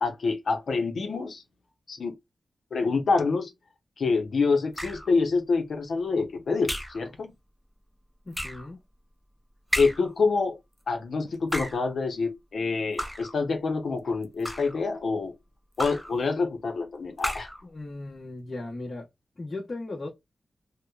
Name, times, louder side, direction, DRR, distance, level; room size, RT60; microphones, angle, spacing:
voice 1, 0.0-1.4 1.9-2.1 2.7-3.5 4.0-6.7 6.9-7.3 9.8-10.6 10.9-15.3 15.8-17.5, left 4 dB, 85° left, 0.6 m, -26 dB
sound 1, 4.7-5.2 6.7-7.1 8.3-8.7 9.7-10.2 11.3-11.9 13.0-13.4 14.2-14.8 15.8-16.2 17.2-17.6, equal, ahead, 0.4 m, -33 dB
voice 2, 8.2-8.8 17.6-19.1 19.4-20.1, left 2 dB, 35° left, 0.9 m, -37 dB
2.8 x 2.1 x 2.3 m
wide cardioid pair, 165°, 0 cm